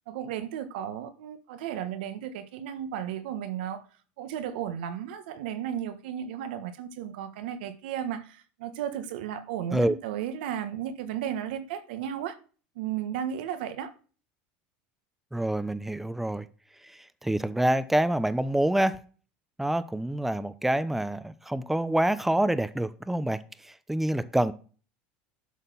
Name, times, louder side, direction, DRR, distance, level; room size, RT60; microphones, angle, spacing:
voice 1, 0.1-3.8 4.2-12.4 12.7-13.9, right 9 dB, 80° right, 1.3 m, -34 dB
voice 2, 15.3-16.5 16.8-19.0 19.6-24.5, right 1 dB, 5° right, 0.7 m, -27 dB
11.5 x 4.1 x 6.9 m
supercardioid pair, 115°, 5 cm